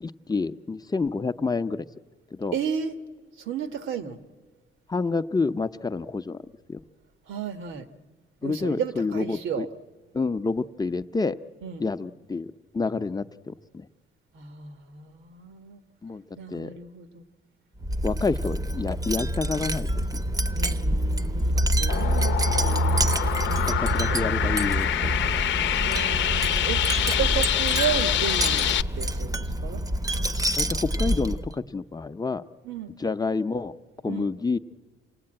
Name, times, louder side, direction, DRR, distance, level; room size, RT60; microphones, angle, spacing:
voice 1, 0.0-1.9 2.4-2.5 4.9-6.4 6.7-6.8 8.4-9.7 10.1-11.4 11.8-12.5 12.7-13.9 16.0-16.2 16.5-16.7 18.0-20.2 23.7-25.2 25.6-25.7 30.6-32.4 33.0-33.7 34.0-34.6, left 4 dB, 20° left, 10 dB, 0.7 m, -28 dB
voice 2, 2.5-2.9 3.4-4.2 7.3-7.9 8.4-9.7 11.6-11.8 14.3-15.8 16.3-17.2 20.5-24.3 25.8-28.7 28.9-29.8 32.6-32.9 34.1-34.3, right 7 dB, 80° right, 10 dB, 1.4 m, -33 dB
Wind chime, 17.8-31.5, right 1 dB, 20° right, 0.8 m, -26 dB
sound 1, 21.9-28.8, left 11 dB, 70° left, 0.7 m, -26 dB
27.5 x 18.0 x 8.8 m, 1.5 s
cardioid pair, 90°, 20 cm